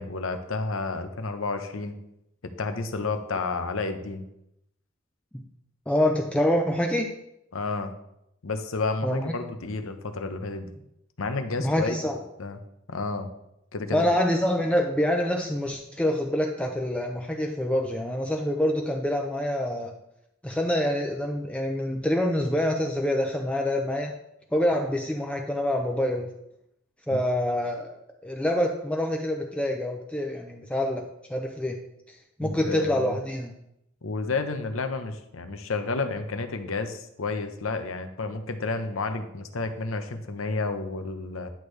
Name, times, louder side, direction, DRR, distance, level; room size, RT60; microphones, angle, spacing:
voice 1, 0.0-1.9 2.6-4.2 7.5-7.9 8.4-10.7 11.2-12.0 12.4-12.6 12.9-13.3 13.7-14.0 27.1-27.2 32.4-33.2 34.0-41.5, left 3 dB, 90° left, 8 dB, 0.9 m, -31 dB
voice 2, 5.9-7.1 9.0-9.3 11.6-12.2 13.9-19.9 20.4-24.1 24.5-26.3 27.1-28.0 28.2-31.8 32.4-33.5, left 1 dB, 5° left, 2 dB, 0.6 m, -26 dB
10.5 x 6.4 x 3.3 m, 0.81 s
head